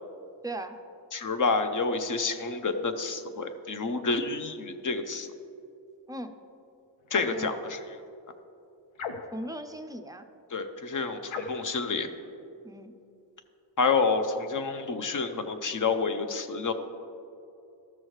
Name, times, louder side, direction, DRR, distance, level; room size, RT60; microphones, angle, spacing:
voice 1, 0.4-0.8 6.1-6.4 7.3-7.5 9.3-10.3 12.6-12.9, right 1 dB, 10° right, 7 dB, 0.4 m, -38 dB
voice 2, 1.1-5.3 7.1-7.8 10.5-12.1 13.8-16.7, left 4 dB, 40° left, 8 dB, 0.7 m, -28 dB
sound 1, 7.1-7.5 8.9-9.5 11.3-11.7, left 5 dB, 80° left, 0.7 m, -37 dB
13.0 x 6.2 x 3.2 m, 2.7 s
cardioid pair, 75°, 47 cm